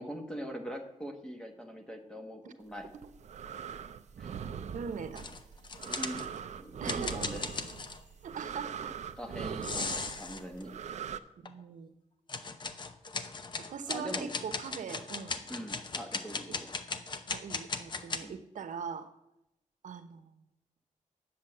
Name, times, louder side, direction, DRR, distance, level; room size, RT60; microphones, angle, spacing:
voice 1, 0.0-2.9 4.2-4.3 5.8-6.3 6.6-7.4 9.2-10.7 13.9-14.3 15.5-16.7 18.2-18.3, equal, 5° left, 3 dB, 1.3 m, -42 dB
sound 1, 2.8-11.2, right 7 dB, 65° right, 0.5 m, -41 dB
voice 2, 4.7-5.3 6.8-7.2 8.2-8.9 9.8-10.2 11.4-11.9 13.7-15.4 17.3-19.1 19.8-20.3, right 6 dB, 85° right, 10 dB, 0.9 m, -41 dB
sound 2, 5.2-6.4 6.9-8.0 9.6-10.6 11.5-11.6 12.3-18.2, left 4 dB, 35° left, 0.7 m, -37 dB
10.0 x 7.3 x 7.9 m, 0.87 s
wide cardioid pair, 175°, 13 cm